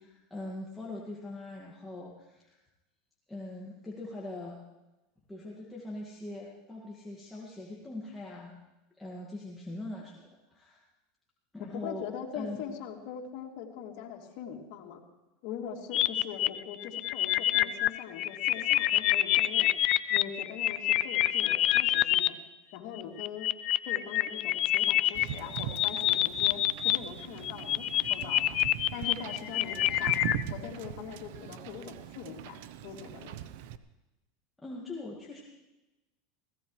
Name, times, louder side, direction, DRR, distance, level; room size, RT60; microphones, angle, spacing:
voice 1, 0.0-2.6 3.3-4.6 5.3-8.6 9.0-10.8 11.5-12.1 12.3-12.6 34.6-35.4, left 2 dB, 5° left, -5 dB, 2.1 m, -42 dB
voice 2, 11.6-15.0 15.4-19.7 20.1-22.4 22.7-23.5 23.9-28.6 28.9-30.2 30.5-33.4, left 8 dB, 60° left, 0 dB, 2.9 m, -42 dB
sound 1, 15.9-22.3 23.0-27.0 27.2-30.4, left 14 dB, 45° left, 0.4 m, -27 dB
Wind / Boat Water vehicle, 25.1-33.8, right 11 dB, 70° right, 0.7 m, -41 dB
21.0 x 17.0 x 3.3 m, 1.0 s
supercardioid pair, 120°, 0 cm